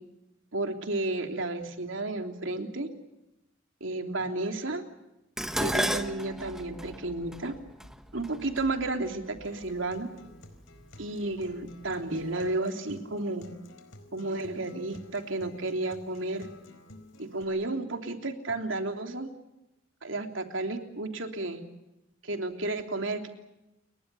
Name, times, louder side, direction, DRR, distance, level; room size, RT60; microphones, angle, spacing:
voice 1, 0.5-2.9 3.8-4.8 5.6-7.5 8.1-10.1 11.0-13.5 14.1-16.5 17.2-19.3 20.0-21.6 22.2-23.3, right 2 dB, 75° right, 5 dB, 3.3 m, -32 dB
Dishes pots and pans, 5.4-9.7 10.6-11.0 11.4-12.2 12.5-12.6, equal, 5° right, 1.3 m, -34 dB
Acoustic guitar, 9.4-17.4, left 1 dB, 80° left, 4.4 m, -52 dB
29.5 x 23.0 x 7.0 m, 0.93 s
head